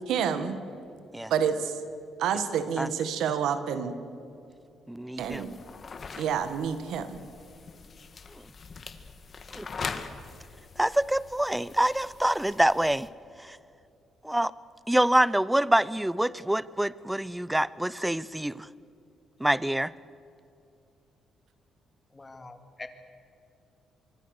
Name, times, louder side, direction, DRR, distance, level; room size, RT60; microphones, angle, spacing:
voice 1, 0.1-0.6 1.3-1.8 2.2-3.9 5.2-5.5 6.2-7.2, right 7 dB, 80° right, 10 dB, 1.8 m, -28 dB
voice 2, 4.9-5.5 9.5-9.7 10.8-13.1 13.4-13.6 14.2-14.5 14.9-18.7 19.4-19.9, right 1 dB, 5° right, 19 dB, 0.7 m, -26 dB
sound 1, 5.2-13.1, left 5 dB, 45° left, 1.9 m, -42 dB
voice 3, 22.1-22.9, left 3 dB, 20° left, 7 dB, 2.5 m, -44 dB
25.5 x 23.5 x 6.7 m, 2.6 s
cardioid pair, 90°, 0 cm